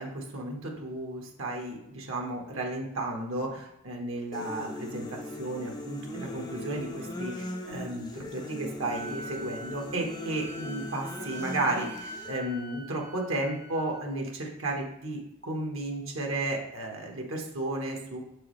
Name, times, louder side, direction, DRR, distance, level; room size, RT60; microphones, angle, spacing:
voice 1, 0.0-18.2, right 2 dB, 65° right, 1 dB, 1.3 m, -33 dB
sound 1, 4.3-12.3, left 1 dB, 20° left, 0.5 m, -39 dB
Wind instrument woodwind instrument, 8.9-14.0, right 1 dB, 40° right, 0.9 m, -44 dB
7.2 x 4.8 x 3.2 m, 0.86 s
head